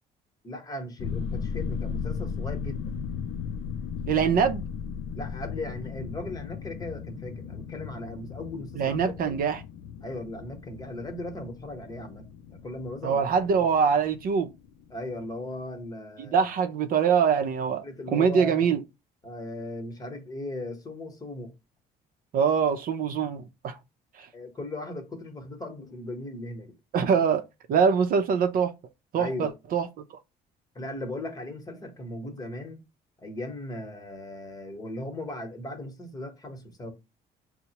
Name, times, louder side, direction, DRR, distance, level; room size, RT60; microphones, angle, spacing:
voice 1, 0.4-3.0 5.1-9.4 10.0-13.2 14.9-16.5 17.8-18.7 19.2-21.5 24.3-26.8 29.2-29.5 30.7-32.8 33.2-36.9, left 1 dB, 20° left, 1.0 m, -37 dB
sound 1, 1.0-15.5 15.8-15.9, left 7 dB, 65° left, 0.4 m, -36 dB
voice 2, 4.1-4.6 8.8-9.6 13.0-14.5 16.2-17.8 18.1-18.8 22.3-23.8 24.2-24.3 26.9-27.4 27.7-28.7 29.1-29.9, right 6 dB, 55° right, 0.6 m, -23 dB
5.5 x 2.1 x 2.8 m
cardioid pair, 110°, 17 cm